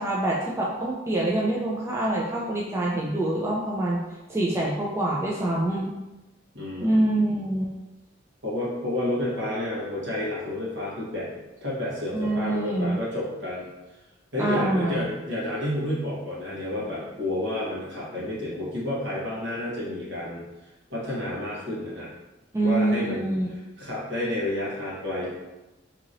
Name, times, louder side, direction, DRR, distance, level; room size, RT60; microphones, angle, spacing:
voice 1, 0.0-4.0 4.3-5.9 6.8-7.7 12.1-13.0 14.4-15.1 22.5-23.5, right 1 dB, 15° right, -4 dB, 0.3 m, -25 dB
voice 2, 6.5-7.3 8.4-11.3 11.6-13.7 14.3-20.4 20.9-22.1 22.6-23.3 23.8-25.3, left 1 dB, 70° right, -7 dB, 1.2 m, -30 dB
2.9 x 2.8 x 2.6 m, 1.0 s
head